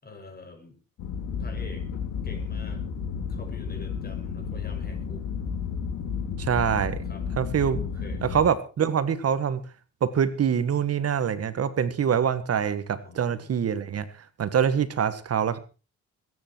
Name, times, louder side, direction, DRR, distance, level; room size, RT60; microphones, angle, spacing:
voice 1, 0.0-0.8 1.4-1.9 2.2-2.8 3.3-5.3 7.0-7.3 7.6-8.2 13.0-13.6 14.5-14.6, left 3 dB, 30° left, 5 dB, 6.4 m, -46 dB
sound 1, 1.0-8.4, left 6 dB, 90° left, 3.6 m, -32 dB
voice 2, 6.4-7.0 7.4-7.8 8.2-9.6 10.0-14.1 14.4-15.6, right 8 dB, 55° right, 12 dB, 1.6 m, -25 dB
22.0 x 9.9 x 4.6 m, 0.34 s
cardioid pair, 90°, 30 cm